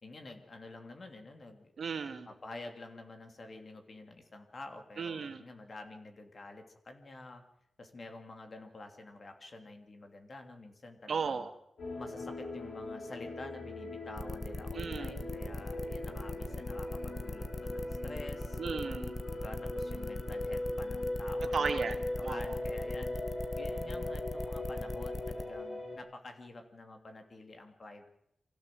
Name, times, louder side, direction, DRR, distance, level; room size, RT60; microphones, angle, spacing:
voice 1, 0.0-1.7 2.2-7.4 7.8-11.5 12.0-18.6 19.3-21.9 22.2-28.1, left 2 dB, 45° left, 5 dB, 3.0 m, -49 dB
voice 2, 1.8-2.3 5.0-5.4 11.1-11.5 14.7-15.1 18.6-19.1 21.5-22.0 22.2-22.4, right 5 dB, 70° right, 7 dB, 2.1 m, -35 dB
sound 1, 11.8-26.0, left 1 dB, 75° left, 7.7 m, -39 dB
sound 2, 14.2-25.4, left 2 dB, 20° left, 1.4 m, -40 dB
25.0 x 15.5 x 7.8 m, 0.79 s
wide cardioid pair, 95°, 0 cm